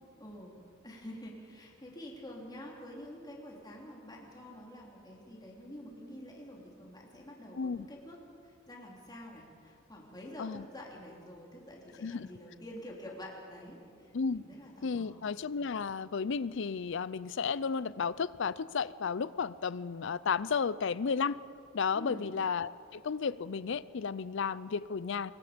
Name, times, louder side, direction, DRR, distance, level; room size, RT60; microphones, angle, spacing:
voice 1, 0.2-0.6 0.8-8.2 8.4-15.2 21.9-22.3, equal, 20° left, -2 dB, 3.2 m, -48 dB
voice 2, 7.6-7.9 10.4-10.7 12.0-12.3 14.1-14.4 14.8-21.4 21.7-25.3, left 5 dB, 65° left, 18 dB, 0.5 m, -33 dB
26.0 x 22.5 x 5.2 m, 2.4 s
head